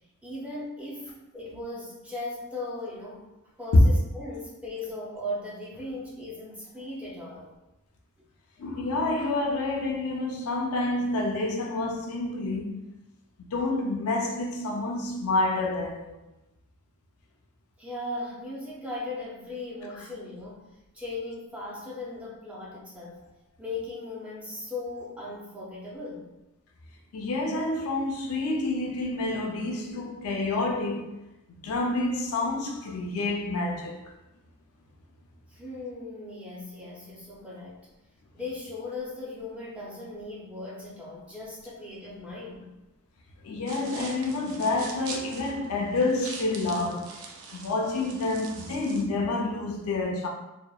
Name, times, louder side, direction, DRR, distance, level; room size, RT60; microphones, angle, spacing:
voice 1, 0.2-3.3 3.6-7.5 17.8-20.6 20.9-23.2 23.6-26.3 35.5-37.8 38.3-42.7, left 2 dB, 5° right, 0.4 m, -38 dB
voice 2, 8.6-12.8 13.5-16.2 27.1-31.1 31.5-34.0 43.4-47.2 47.5-50.3, left 2 dB, 80° left, 0.4 m, -28 dB
sound 1, 43.7-49.0, right 4 dB, 70° right, 0.4 m, -43 dB
2.8 x 2.1 x 2.3 m
head